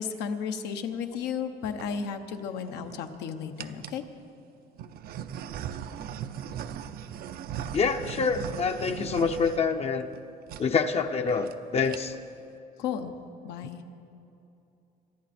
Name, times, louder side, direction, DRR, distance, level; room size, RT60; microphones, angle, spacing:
voice 1, 0.0-4.0 12.8-13.1 13.4-13.8, left 7 dB, 85° left, 6 dB, 1.1 m, -33 dB
sound 1, 1.5-1.9 2.6-3.1 3.6-4.0 4.8-10.2 10.5-10.7 11.0-11.1 11.3-11.5 11.8-12.3, right 9 dB, 65° right, 0.6 m, -39 dB
voice 2, 7.7-10.1 10.6-12.2, left 5 dB, 40° left, 6 dB, 0.7 m, -26 dB
23.5 x 11.5 x 4.3 m, 2.8 s
cardioid pair, 110°, 17 cm